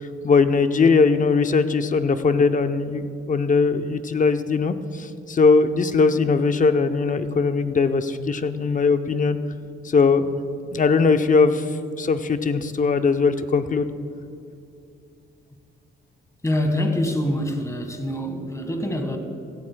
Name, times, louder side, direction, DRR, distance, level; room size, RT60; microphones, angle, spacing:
voice 1, 0.0-9.4 9.8-10.4 10.7-11.6 12.0-13.9, left 4 dB, 40° left, 9 dB, 0.7 m, -20 dB
voice 2, 16.4-19.2, left 1 dB, 15° left, 4 dB, 1.6 m, -25 dB
16.5 x 15.5 x 2.3 m, 2.6 s
cardioid pair, 100°, 21 cm